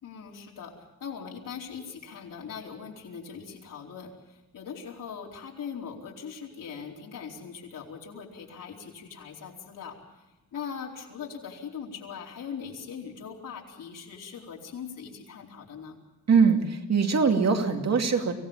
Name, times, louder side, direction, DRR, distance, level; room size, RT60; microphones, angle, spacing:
voice 1, 0.0-10.0 10.5-16.0, left 6 dB, 80° left, -1 dB, 4.5 m, -40 dB
voice 2, 16.3-18.3, right 5 dB, 55° right, 4 dB, 2.5 m, -22 dB
25.0 x 17.0 x 7.3 m, 1.0 s
wide cardioid pair, 135°, 32 cm